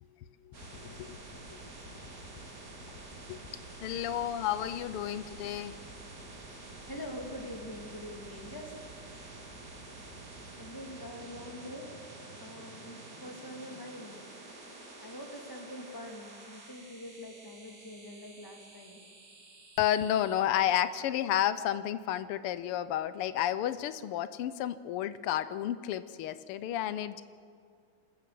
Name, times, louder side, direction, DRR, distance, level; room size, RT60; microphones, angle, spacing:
voice 1, 0.4-1.2 1.5-1.6 3.3-3.4 3.8-5.8 19.8-27.2, left 11 dB, 85° left, 14 dB, 1.6 m, -31 dB
sound 1, 0.5-20.4, right 2 dB, 40° right, 3.2 m, -48 dB
voice 2, 6.9-9.2 10.5-14.2 15.0-19.0, left 1 dB, 10° left, 1 dB, 2.7 m, -45 dB
25.5 x 14.0 x 7.7 m, 2.2 s
omnidirectional pair, 2.4 m